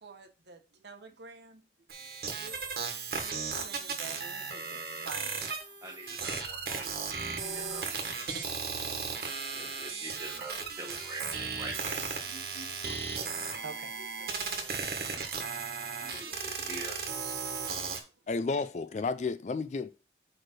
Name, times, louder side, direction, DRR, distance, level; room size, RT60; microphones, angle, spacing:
voice 1, 0.0-5.5 5.9-6.5 8.2-10.1 11.6-14.5 14.8-15.5 16.0-18.0, right 4 dB, 80° right, 1.0 m, -51 dB
sound 1, 1.9-18.0, right 5 dB, 55° right, 1.4 m, -36 dB
voice 2, 5.8-8.4 9.5-12.1 16.1-17.0, right 2 dB, 20° right, 2.1 m, -45 dB
voice 3, 18.3-19.9, left 4 dB, 40° left, 0.3 m, -32 dB
4.8 x 4.4 x 6.0 m
head